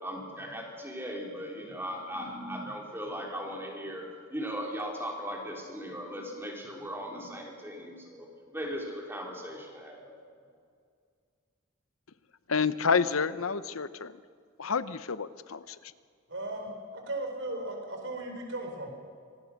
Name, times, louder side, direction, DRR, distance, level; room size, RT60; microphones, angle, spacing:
voice 1, 0.0-4.0 4.3-8.3 8.5-10.1, equal, 10° right, 0 dB, 3.5 m, -38 dB
voice 2, 12.5-14.2 14.6-15.9, left 5 dB, 80° left, 15 dB, 0.9 m, -29 dB
voice 3, 16.3-18.9, right 1 dB, 60° right, 3 dB, 4.7 m, -36 dB
25.5 x 19.0 x 6.5 m, 2.2 s
head